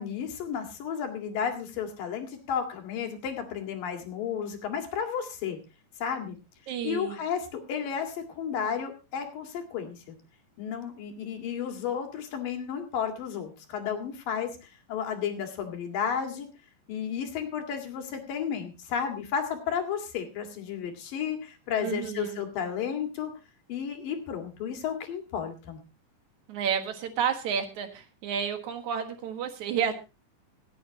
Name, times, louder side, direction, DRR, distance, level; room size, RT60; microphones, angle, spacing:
voice 1, 0.0-5.6 6.0-6.4 6.8-10.2 10.6-16.5 16.9-23.3 23.7-25.8, left 7 dB, 85° left, 4 dB, 3.8 m, -33 dB
voice 2, 6.7-7.2 21.8-22.5 26.5-30.0, right 8 dB, 65° right, 6 dB, 2.9 m, -31 dB
25.5 x 8.6 x 2.8 m, 0.29 s
omnidirectional pair, 3.9 m